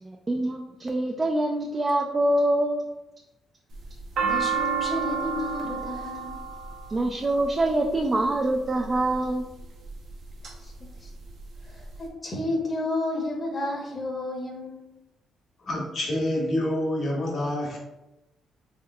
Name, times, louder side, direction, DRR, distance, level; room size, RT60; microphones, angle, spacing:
voice 1, 0.0-2.8 6.9-9.4, right 1 dB, 30° right, 1 dB, 0.3 m, -25 dB
sound 1, 3.7-8.0 8.8-9.3 9.9-10.5 10.9-11.0 11.1-12.0, right 6 dB, 70° right, 0.7 m, -30 dB
voice 2, 4.2-6.4 10.6-11.1 11.6-14.8, left 2 dB, 35° left, -1 dB, 0.9 m, -31 dB
voice 3, 15.6-17.8, left 1 dB, 60° left, -3 dB, 1.3 m, -27 dB
3.5 x 3.2 x 2.3 m, 0.92 s
cardioid pair, 90°, 0 cm